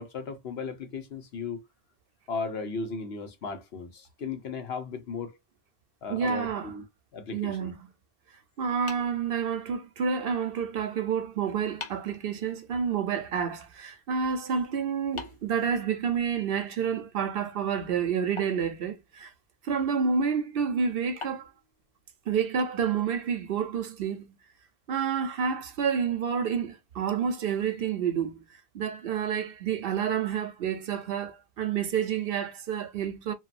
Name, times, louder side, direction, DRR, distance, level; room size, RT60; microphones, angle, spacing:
voice 1, 0.0-1.6 2.3-5.4 6.0-6.8 7.1-7.7, left 4 dB, 80° left, 1.0 m, -36 dB
voice 2, 6.1-6.7 7.3-7.8 8.6-19.3 19.6-21.5 22.3-24.3 24.9-28.4 28.7-33.3, right 7 dB, 65° right, 0.8 m, -29 dB
sound 1, 8.9-10.0 11.2-11.3 11.8-12.2 15.2-16.4 18.4-19.5 21.2-23.3, left 4 dB, 35° left, 0.5 m, -46 dB
2.8 x 2.2 x 2.4 m
omnidirectional pair, 1.1 m